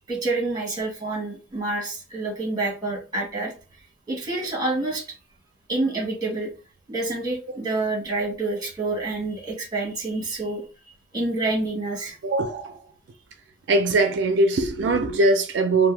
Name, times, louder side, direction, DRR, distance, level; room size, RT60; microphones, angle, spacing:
voice 1, 0.1-3.5 4.1-5.0 5.7-6.5 6.9-10.6 11.1-12.2, right 2 dB, 20° right, 1.1 m, -27 dB
voice 2, 12.2-12.8 13.7-15.9, right 2 dB, 80° right, 0.4 m, -21 dB
2.6 x 2.1 x 3.2 m
head